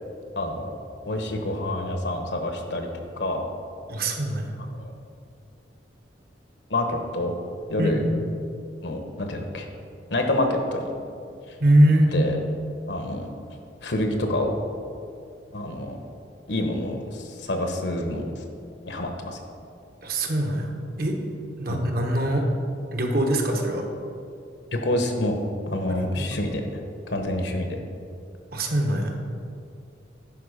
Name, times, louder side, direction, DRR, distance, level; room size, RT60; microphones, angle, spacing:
voice 1, 0.3-0.8 1.1-3.5 4.8-4.9 6.7-7.3 7.7-8.0 8.8-9.7 10.1-10.9 12.1-12.4 12.9-13.3 13.8-14.6 15.5-16.0 16.5-18.4 18.8-19.4 21.7-21.8 24.7-25.4 25.7-26.6 27.1-27.8, left 1 dB, 65° left, 4 dB, 1.1 m, -27 dB
voice 2, 3.9-4.5 7.8-8.1 11.6-12.1 20.0-20.7 21.0-21.2 21.6-22.4 22.9-23.9 26.0-26.3 28.5-29.2, right 1 dB, 55° right, 2 dB, 1.0 m, -22 dB
11.0 x 4.9 x 5.1 m, 2.5 s
head